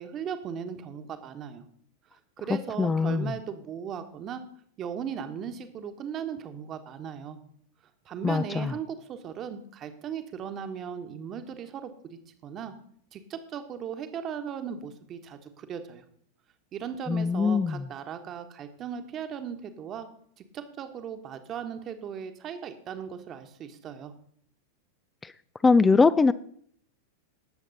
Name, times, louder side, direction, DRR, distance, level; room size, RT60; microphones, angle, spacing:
voice 1, 0.0-1.6 2.1-4.4 4.8-7.4 8.0-12.7 13.1-16.0 16.7-20.1 20.4-24.1, right 8 dB, 30° right, 8 dB, 1.3 m, -37 dB
voice 2, 2.8-3.3 8.2-8.7 17.1-17.8 25.2-25.3 25.6-26.3, left 4 dB, 15° left, 17 dB, 0.4 m, -22 dB
19.0 x 7.3 x 4.1 m, 0.63 s
figure-of-eight pair, 90°, 0 cm